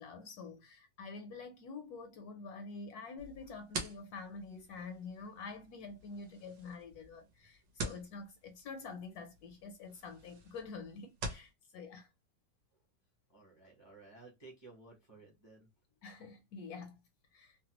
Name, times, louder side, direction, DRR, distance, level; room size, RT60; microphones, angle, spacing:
voice 1, 0.0-12.1 16.0-17.0 17.3-17.6, left 4 dB, 70° left, 1.0 m, -47 dB
sound 1, 3.2-11.5, right 2 dB, 75° right, 1.5 m, -47 dB
voice 2, 13.3-15.7, right 3 dB, 25° right, 0.6 m, -56 dB
3.2 x 2.1 x 2.9 m
omnidirectional pair, 1.9 m